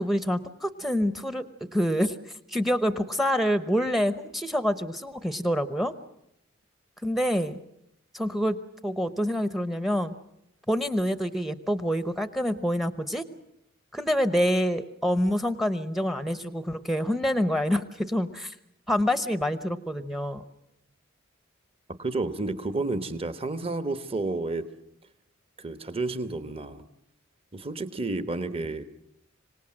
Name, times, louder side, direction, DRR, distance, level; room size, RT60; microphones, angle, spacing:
voice 1, 0.0-1.4 1.7-2.2 2.5-5.9 7.0-7.6 8.1-8.6 8.8-10.1 10.7-13.2 13.9-18.5 18.9-20.4, equal, ahead, 12 dB, 0.8 m, -26 dB
voice 2, 22.0-24.7 25.6-26.9 27.5-28.8, right 2 dB, 25° right, 11 dB, 1.1 m, -31 dB
25.5 x 18.5 x 7.7 m, 0.78 s
head